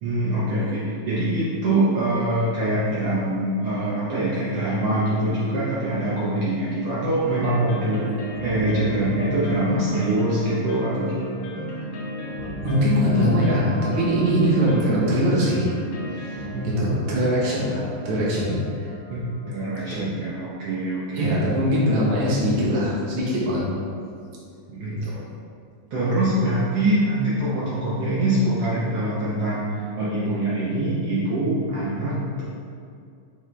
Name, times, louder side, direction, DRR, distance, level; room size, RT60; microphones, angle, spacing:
voice 1, 0.0-11.2 16.5-16.9 19.1-19.2 19.5-21.4 24.7-25.0 25.9-32.4, right 1 dB, 75° right, -9 dB, 1.4 m, -24 dB
sound 1, 7.2-20.1, right 1 dB, 85° left, 1.4 m, -33 dB
voice 2, 12.6-15.7 16.1-18.9 19.9-20.0 21.1-23.6 25.0-25.2, equal, 60° right, -6 dB, 1.5 m, -22 dB
7.8 x 3.7 x 3.4 m, 2.4 s
omnidirectional pair, 4.1 m